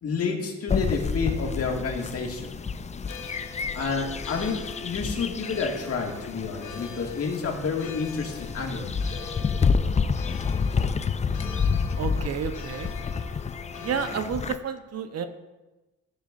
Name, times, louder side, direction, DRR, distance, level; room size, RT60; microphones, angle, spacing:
voice 1, 0.0-2.6 3.7-9.0, left 4 dB, 50° left, 1 dB, 1.9 m, -29 dB
sound 1, 0.7-14.6, left 5 dB, 25° left, 0.4 m, -29 dB
sound 2, 3.1-14.2, left 5 dB, 85° left, 1.3 m, -44 dB
voice 2, 12.0-12.9 13.8-15.3, right 7 dB, 55° right, 8 dB, 0.9 m, -30 dB
14.0 x 10.0 x 2.5 m, 1.1 s
cardioid pair, 90°, 30 cm